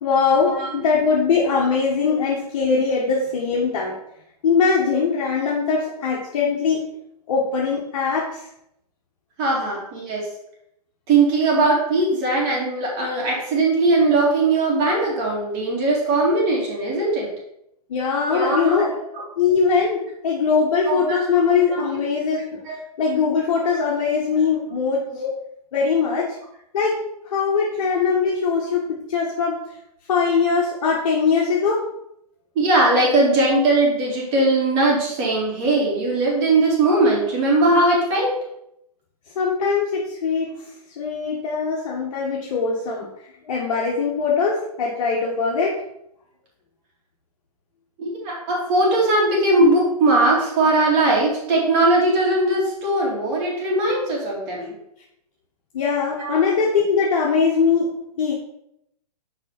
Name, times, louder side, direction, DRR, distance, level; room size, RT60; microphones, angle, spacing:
voice 1, 0.0-3.9 4.4-6.8 7.3-8.4 17.9-18.9 19.4-22.6 23.0-25.0 25.7-26.3 26.7-27.0 27.3-28.8 29.1-29.6 30.1-31.8 39.3-40.5 41.0-43.1 43.4-45.8 55.7-57.9 58.2-58.3, left 5 dB, 55° left, -4 dB, 1.7 m, -21 dB
voice 2, 9.4-10.3 11.1-17.3 18.3-19.2 20.9-21.4 21.7-21.8 22.7-22.8 25.1-25.3 32.6-38.4 48.0-54.7 56.2-56.4, right 2 dB, 35° right, -4 dB, 3.6 m, -20 dB
6.7 x 5.0 x 6.0 m, 0.77 s
hypercardioid pair, 140°, 20 cm